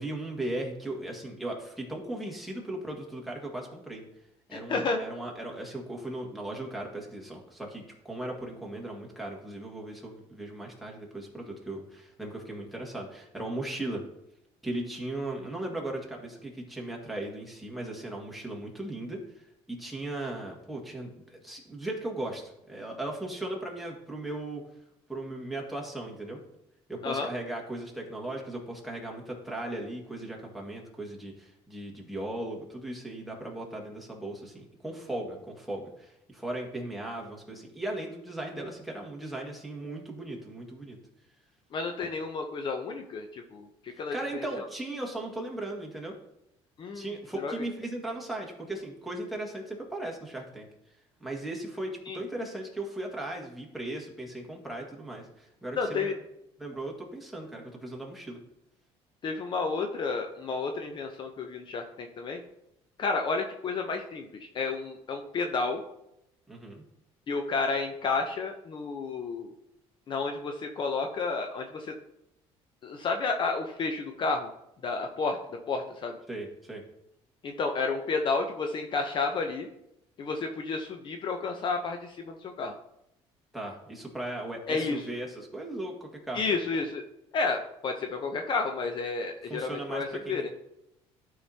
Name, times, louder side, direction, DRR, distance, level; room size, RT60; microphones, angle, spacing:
voice 1, 0.0-4.0 4.5-14.0 14.6-24.6 25.1-26.4 26.9-41.0 43.9-46.1 46.9-50.7 51.2-56.1 56.6-58.4 66.5-66.8 76.3-76.8 83.5-86.4 89.5-90.5, right 1 dB, ahead, 0 dB, 1.8 m, -37 dB
voice 2, 4.5-5.0 27.0-27.3 41.7-44.7 46.8-47.5 52.1-52.2 55.7-56.2 59.2-62.4 63.0-65.8 67.3-69.5 70.1-71.9 72.8-74.5 74.8-76.2 77.4-79.7 80.2-82.7 84.7-85.1 86.3-87.0 87.3-90.5, left 4 dB, 45° left, 5 dB, 0.7 m, -31 dB
12.0 x 4.8 x 2.8 m, 0.84 s
cardioid pair, 115°, 12 cm